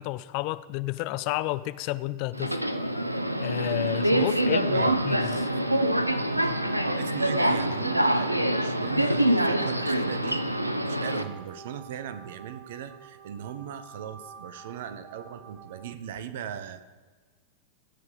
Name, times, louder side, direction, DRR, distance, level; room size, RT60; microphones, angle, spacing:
voice 1, 0.0-2.6 3.4-5.5, left 18 dB, 45° left, 0.4 m, -31 dB
Subway metro underground, 2.3-11.2, right 1 dB, 85° right, 0.7 m, -25 dB
voice 2, 4.1-5.0 6.4-6.6 6.9-10.4 10.8-16.9, right 9 dB, 55° right, 0.9 m, -38 dB
sound 1, 5.2-15.9, right 6 dB, 25° right, 3.0 m, -49 dB
17.0 x 5.6 x 7.0 m
figure-of-eight pair, 90°, 0 cm